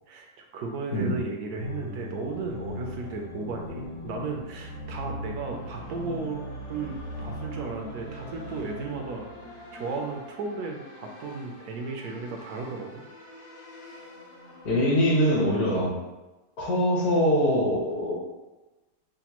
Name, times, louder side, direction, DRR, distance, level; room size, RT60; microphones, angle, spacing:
voice 1, 0.1-9.3 9.7-13.0, right 4 dB, 75° right, 1 dB, 1.1 m, -35 dB
sound 1, 1.5-15.6, left 1 dB, 80° left, 0.5 m, -41 dB
voice 2, 14.6-15.9 16.6-18.2, equal, 65° left, -5 dB, 1.7 m, -23 dB
5.1 x 2.2 x 2.9 m, 1.1 s
omnidirectional pair, 1.7 m